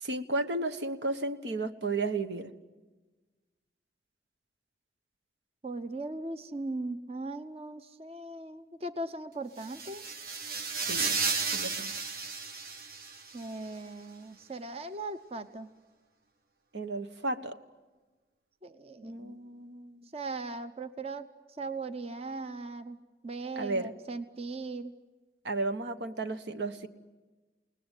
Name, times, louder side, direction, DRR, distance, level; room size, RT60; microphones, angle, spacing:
voice 1, 0.0-2.5 10.9-11.2 11.5-11.9 16.7-17.6 19.0-20.1 23.5-23.9 25.4-26.9, right 2 dB, 80° right, 9 dB, 1.3 m, -33 dB
voice 2, 5.6-10.0 13.3-15.7 18.6-19.4 20.1-21.3 21.6-23.0 23.2-24.9, right 2 dB, 35° right, 11 dB, 0.8 m, -38 dB
sound 1, 9.6-13.5, right 4 dB, 55° right, 1.5 m, -33 dB
29.0 x 19.5 x 9.2 m, 1.3 s
head